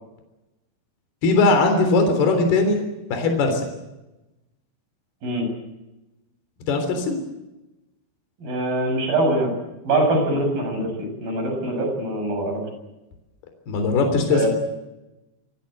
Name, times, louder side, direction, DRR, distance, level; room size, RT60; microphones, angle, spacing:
voice 1, 1.2-2.8 3.1-3.7 6.7-7.2 13.7-14.5, left 3 dB, 60° left, 5 dB, 5.5 m, -19 dB
voice 2, 8.4-9.5 9.9-12.6 14.3-14.5, right 2 dB, 50° right, 4 dB, 9.0 m, -23 dB
25.5 x 21.0 x 8.1 m, 0.98 s
omnidirectional pair, 5.2 m